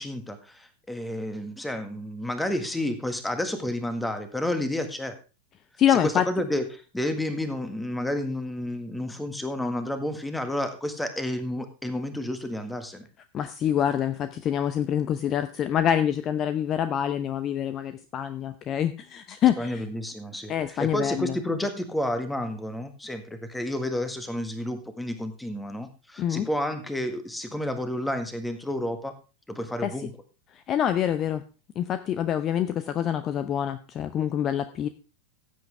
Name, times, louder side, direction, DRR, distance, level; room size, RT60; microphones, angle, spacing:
voice 1, 0.0-5.2 5.9-13.1 19.6-29.1 29.5-30.1, left 1 dB, 5° left, 8 dB, 1.7 m, -30 dB
voice 2, 5.8-6.3 13.3-19.8 20.5-21.3 26.2-26.5 29.8-29.9 30.7-31.4 31.8-34.9, left 10 dB, 30° left, 12 dB, 0.7 m, -26 dB
15.5 x 8.3 x 3.4 m, 0.32 s
figure-of-eight pair, 90°, 0 cm